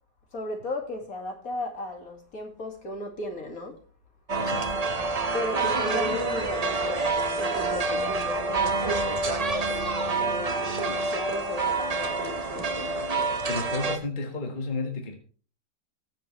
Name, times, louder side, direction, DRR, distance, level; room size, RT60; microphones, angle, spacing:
voice 1, 0.3-3.7 5.3-7.1 7.4-13.0, left 2 dB, 50° left, 2.6 m, -35 dB
sound 1, 4.3-14.0, right 3 dB, 30° right, 0.8 m, -27 dB
voice 2, 4.4-4.8 13.5-15.2, left 3 dB, 30° left, 1.7 m, -32 dB
19.5 x 7.6 x 3.3 m
omnidirectional pair, 1.9 m